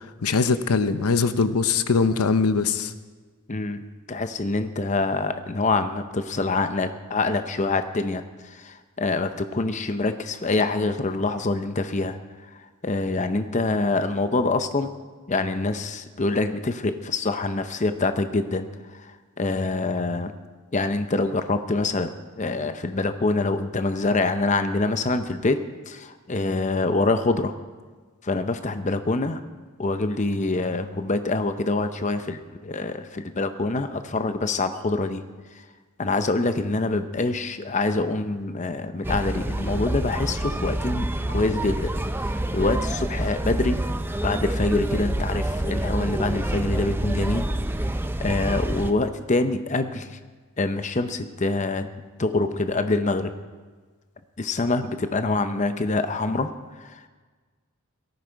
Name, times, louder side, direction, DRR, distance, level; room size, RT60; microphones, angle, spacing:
voice 1, 0.2-2.9, left 4 dB, 85° left, 12 dB, 0.7 m, -21 dB
voice 2, 3.5-14.9 15.3-20.4 20.7-25.6 25.9-27.5 28.2-29.4 29.8-35.6 36.0-41.9 42.2-43.8 44.2-47.5 48.2-50.2 50.6-51.9 52.2-53.3 54.4-57.1, left 3 dB, 35° left, 9 dB, 0.7 m, -25 dB
sound 1, 39.0-48.9, right 1 dB, 10° right, 0.5 m, -27 dB
17.5 x 14.0 x 4.6 m, 1.4 s
head